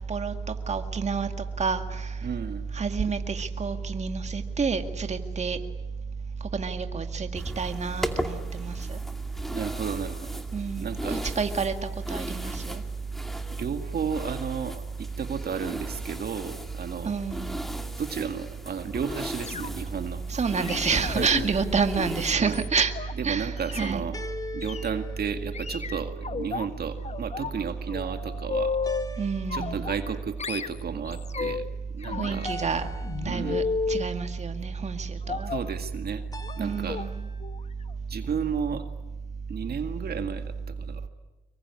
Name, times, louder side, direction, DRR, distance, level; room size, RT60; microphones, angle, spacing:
voice 1, 0.7-1.3 1.6-2.1 2.7-5.6 6.5-9.0 10.5-12.8 17.0-17.7 20.3-22.9 23.2-24.0 29.2-29.9 32.2-32.8 33.2-35.5 36.6-37.3, right 5 dB, 35° right, 2.1 m, -28 dB
voice 2, 2.2-2.7 9.5-10.4 10.8-11.3 13.6-17.1 18.0-20.4 21.2-21.5 22.4-22.6 23.2-24.2 24.5-28.8 29.5-31.7 31.9-32.5 33.2-33.6 35.5-36.2 36.6-37.1 38.1-38.9 39.5-41.1, right 7 dB, 50° right, 1.9 m, -33 dB
sound 1, 7.3-22.3, equal, ahead, 2.4 m, -38 dB
sound 2, 19.3-20.0 20.6-23.1 23.6-23.9 24.6-24.9 25.5-26.7 27.0-27.6 27.9-29.1 29.5-30.1 30.4-31.7 32.0-34.1 35.3-35.7 36.4-36.6 36.9-37.1 37.4-37.6 37.9-38.0, left 5 dB, 35° left, 1.2 m, -33 dB
sound 3, 19.7-20.4 24.1-26.1 28.8-30.2 32.4-33.6 36.3-37.3, left 2 dB, 20° left, 2.1 m, -42 dB
25.5 x 23.0 x 9.7 m
cardioid pair, 90°, 20 cm